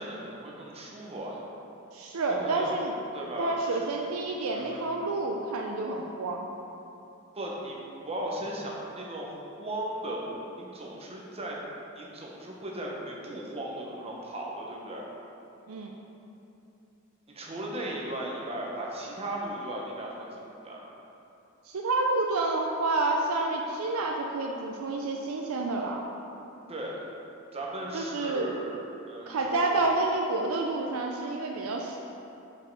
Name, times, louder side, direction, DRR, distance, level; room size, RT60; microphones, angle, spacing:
voice 1, 0.0-1.4 2.3-2.8 3.1-3.9 4.5-4.9 7.3-7.8 8.0-11.6 11.9-15.1 17.3-20.9 26.7-27.0 27.5-28.8 29.1-29.7, right 1 dB, 30° right, -3 dB, 1.0 m, -37 dB
voice 2, 1.9-2.9 3.4-6.5 15.7-15.9 21.7-26.0 27.9-28.5 29.3-32.0, right 2 dB, 75° right, 1 dB, 0.5 m, -29 dB
5.5 x 5.2 x 4.6 m, 2.8 s
head